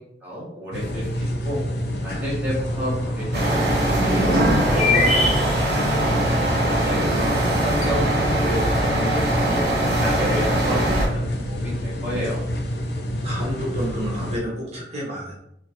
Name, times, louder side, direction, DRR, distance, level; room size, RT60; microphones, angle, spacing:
voice 1, 0.2-1.6 2.0-5.3 5.5-6.4 6.8-9.6 10.0-12.4, equal, 10° right, -8 dB, 1.3 m, -30 dB
sound 1, 0.7-14.4, equal, 65° left, 0.6 m, -28 dB
sound 2, 2.6-2.7 3.0-3.1 4.5-6.1 6.6-6.7 7.0-7.4, left 3 dB, 35° left, 0.9 m, -23 dB
sound 3, 3.3-11.1, right 1 dB, 60° right, 1.4 m, -22 dB
voice 2, 13.2-15.3, equal, 35° right, -6 dB, 1.2 m, -29 dB
3.8 x 3.3 x 3.1 m, 0.78 s
head